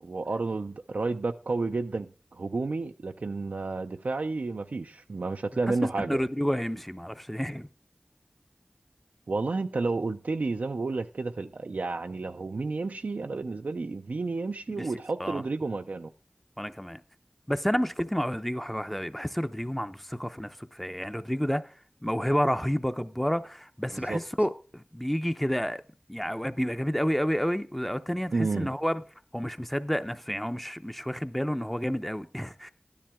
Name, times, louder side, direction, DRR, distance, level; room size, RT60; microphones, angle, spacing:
voice 1, 0.0-6.2 9.3-16.1 23.9-24.2 28.3-28.7, right 3 dB, 80° right, 0.4 m, -31 dB
voice 2, 5.7-7.7 14.8-14.9 15.2-15.4 16.6-17.0 17.5-21.7 22.0-25.8 26.1-29.0 29.3-32.7, equal, 5° left, 0.6 m, -30 dB
12.0 x 10.5 x 3.5 m
wide cardioid pair, 50°, 3 cm